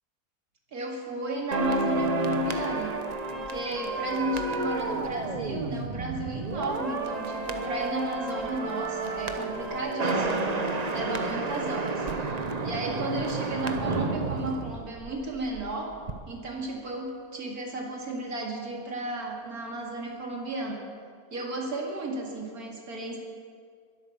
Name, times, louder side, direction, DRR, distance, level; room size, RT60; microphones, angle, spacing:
voice 1, 0.7-3.0 3.3-10.6 10.9-12.1 12.6-15.9 16.3-20.8 21.3-23.2, right 2 dB, 80° right, 0 dB, 2.8 m, -33 dB
sound 1, 1.5-15.7 15.9-16.1, right 3 dB, 30° right, 0.9 m, -31 dB
22.0 x 8.6 x 7.0 m, 2.1 s
omnidirectional pair, 1.6 m